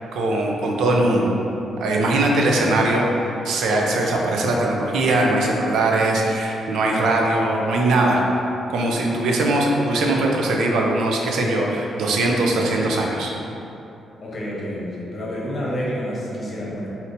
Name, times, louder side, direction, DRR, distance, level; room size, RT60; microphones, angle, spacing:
voice 1, 0.1-1.3 1.8-8.2 8.7-13.3, right 2 dB, 85° right, 0 dB, 0.5 m, -20 dB
voice 2, 14.2-16.9, equal, 35° left, -5 dB, 1.0 m, -29 dB
5.8 x 2.8 x 2.6 m, 2.9 s
cardioid pair, 125°, 0 cm